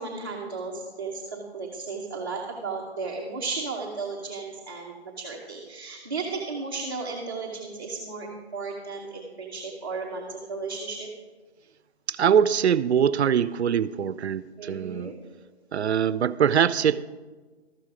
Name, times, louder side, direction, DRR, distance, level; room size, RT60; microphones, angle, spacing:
voice 1, 0.0-11.1 14.6-15.2, right 4 dB, 20° right, -3 dB, 0.8 m, -34 dB
voice 2, 12.1-15.1 15.7-17.0, right 8 dB, 90° right, 17 dB, 0.5 m, -23 dB
13.0 x 7.7 x 4.9 m, 1.4 s
hypercardioid pair, 170°, 32 cm